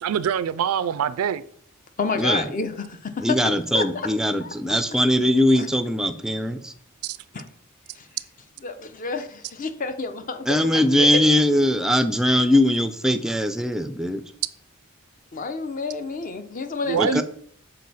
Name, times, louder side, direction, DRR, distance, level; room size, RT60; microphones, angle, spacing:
voice 1, 0.0-1.4 7.0-7.2 16.8-17.2, right 8 dB, 80° right, 0.3 m, -24 dB
voice 2, 2.0-3.4 3.7-4.1 4.4-4.5 5.5-5.7 7.3-7.4 7.9-8.1 8.6-11.1 15.3-17.2, left 4 dB, 40° left, 0.6 m, -29 dB
voice 3, 3.2-6.7 10.5-14.2 16.9-17.2, left 1 dB, ahead, 0.4 m, -21 dB
6.5 x 4.2 x 4.1 m
head